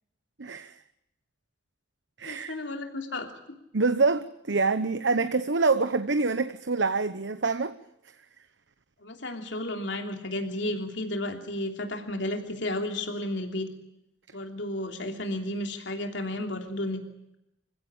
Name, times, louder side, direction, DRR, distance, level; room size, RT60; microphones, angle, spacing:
voice 1, 0.4-0.8 2.2-2.6 3.7-7.7, right 4 dB, 75° right, 11 dB, 1.0 m, -26 dB
voice 2, 2.2-3.6 9.0-13.7 14.3-17.0, left 1 dB, 80° left, 4 dB, 3.2 m, -33 dB
26.5 x 16.0 x 8.9 m, 0.84 s
head